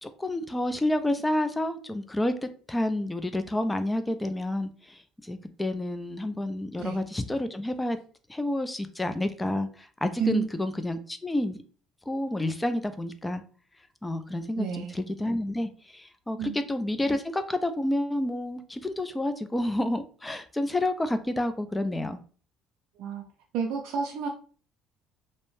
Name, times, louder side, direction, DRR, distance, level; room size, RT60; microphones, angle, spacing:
voice 1, 0.0-8.0 8.3-11.6 12.1-13.4 14.0-22.2, left 1 dB, 10° left, 10 dB, 0.3 m, -29 dB
voice 2, 14.6-15.0 16.4-16.6 23.0-23.2 23.5-24.3, right 7 dB, 75° right, 0 dB, 0.3 m, -30 dB
2.7 x 2.1 x 3.0 m, 0.41 s
supercardioid pair, 100°, 0 cm